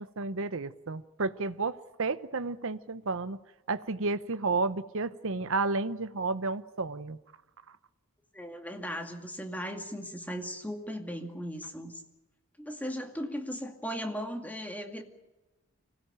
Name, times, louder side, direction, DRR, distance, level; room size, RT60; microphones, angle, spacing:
voice 1, 0.2-3.4 3.7-7.2, right 3 dB, 65° right, 12 dB, 0.9 m, -31 dB
voice 2, 8.3-11.9 12.6-15.0, equal, 10° left, 4 dB, 2.3 m, -37 dB
25.0 x 17.0 x 8.9 m, 1.1 s
head